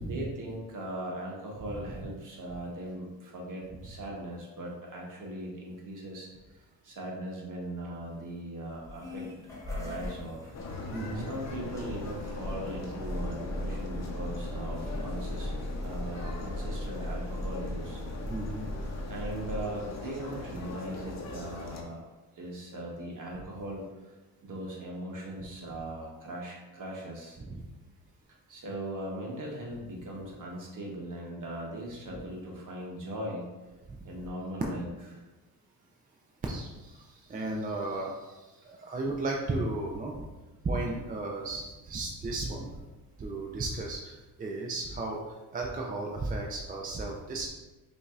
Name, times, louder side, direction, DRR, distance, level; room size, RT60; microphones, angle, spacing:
voice 1, 0.0-9.3 9.6-10.5 11.1-15.5 15.8-18.0 19.1-22.0 22.3-24.1 24.4-27.4 28.5-33.5 34.0-34.9 35.1-35.2, right 1 dB, 50° right, -2 dB, 1.2 m, -39 dB
sound 1, 8.7-19.6, left 1 dB, 10° left, 1.2 m, -38 dB
sound 2, 10.5-21.8, left 3 dB, 40° left, 0.8 m, -41 dB
voice 2, 10.9-11.3 18.3-18.6 27.4-27.6 32.1-32.2 33.9-34.0 36.5-38.3 38.7-40.3 40.6-42.7 43.2-44.1 44.4-45.2 45.5-47.5, right 2 dB, 20° right, -1 dB, 0.5 m, -34 dB
5.1 x 2.8 x 2.4 m, 1.1 s
supercardioid pair, 80°, 40 cm